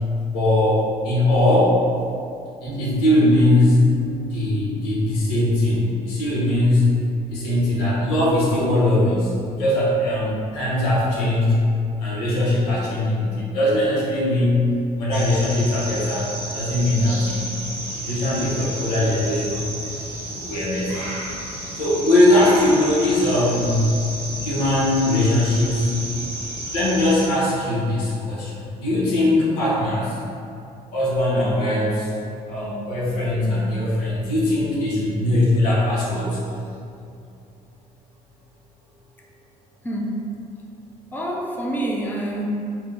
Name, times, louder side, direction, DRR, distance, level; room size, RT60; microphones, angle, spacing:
voice 1, 0.3-1.8 2.6-3.8 4.3-7.0 7.3-11.6 12.0-14.7 15.0-17.5 18.0-19.7 20.3-21.1 21.8-23.9 24.4-25.9 26.7-30.2 30.9-32.1 32.5-36.4, left 1 dB, 80° left, -7 dB, 0.8 m, -20 dB
Bass guitar, 2.7-8.9, right 1 dB, 50° right, 0.6 m, -35 dB
sound 1, 15.1-27.3, right 1 dB, 85° right, 0.9 m, -32 dB
voice 2, 39.8-40.3 41.1-42.5, right 1 dB, 10° left, -2 dB, 0.5 m, -27 dB
2.7 x 2.1 x 3.7 m, 2.5 s
hypercardioid pair, 55°, 20 cm